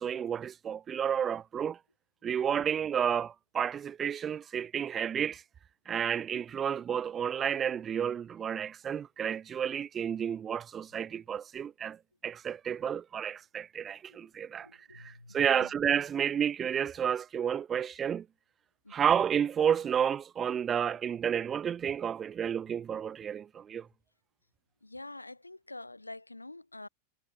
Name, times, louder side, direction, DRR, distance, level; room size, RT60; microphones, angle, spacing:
voice 1, 0.0-1.8 2.2-5.4 5.9-12.0 12.2-18.3 18.9-23.9, right 8 dB, 25° right, 1.3 m, -31 dB
voice 2, 14.6-15.7 18.8-19.0 24.8-26.9, left 2 dB, 85° left, 7.3 m, -47 dB
figure-of-eight pair, 90°, 0 cm